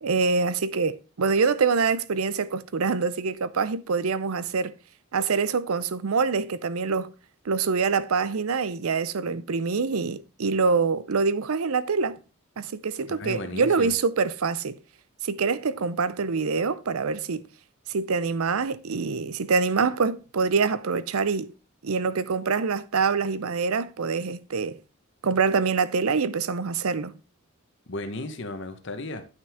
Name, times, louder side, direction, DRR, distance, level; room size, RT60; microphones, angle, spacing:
voice 1, 0.0-4.7 5.1-7.1 7.5-12.2 12.6-14.8 15.2-17.4 17.9-21.5 21.8-24.8 25.2-27.1, right 5 dB, 85° right, 0.6 m, -25 dB
voice 2, 13.1-13.9 27.9-29.2, left 2 dB, 55° left, 1.1 m, -35 dB
9.6 x 5.9 x 3.6 m
head